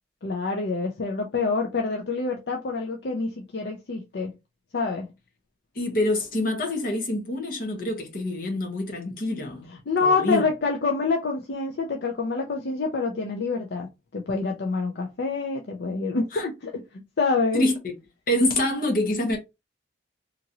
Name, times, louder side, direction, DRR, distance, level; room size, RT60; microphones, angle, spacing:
voice 1, 0.2-4.3 4.7-5.1 9.7-13.9 14.1-16.8 17.2-17.6, left 4 dB, 65° left, 0.5 m, -26 dB
voice 2, 5.8-9.7 10.0-10.4 16.3-16.5 17.5-17.9 18.3-19.4, left 1 dB, 50° left, 1.0 m, -26 dB
2.9 x 2.5 x 2.7 m
head